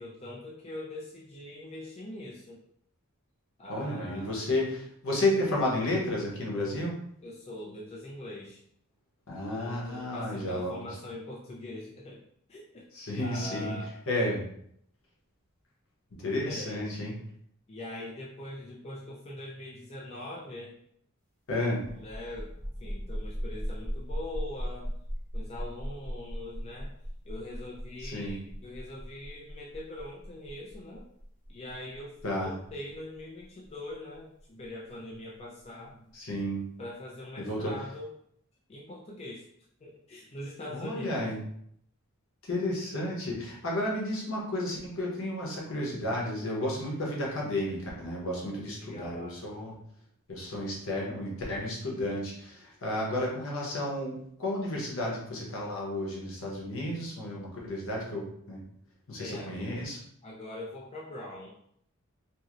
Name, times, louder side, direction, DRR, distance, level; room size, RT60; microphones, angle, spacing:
voice 1, 0.0-2.6 3.6-4.3 7.2-8.6 9.5-12.2 12.5-12.9 13.2-13.9 16.4-16.8 17.7-20.7 21.9-22.5 22.8-25.0 25.3-26.9 27.2-31.1 31.5-36.0 36.8-38.1 38.7-39.5 39.8-41.3 48.8-49.4 59.2-59.7 60.2-61.5, left 1 dB, 30° left, -3 dB, 0.4 m, -42 dB
voice 2, 3.7-6.9 9.3-10.8 12.9-13.7 14.1-14.4 16.2-17.1 21.5-21.8 28.0-28.4 32.2-32.5 36.1-36.6 37.4-37.7 40.7-41.4 42.4-49.8 50.3-58.6 59.1-60.0, left 1 dB, 65° left, -2 dB, 0.9 m, -32 dB
sound 1, 21.8-35.1, equal, 5° left, 0.9 m, -38 dB
2.9 x 2.7 x 2.5 m, 0.69 s
head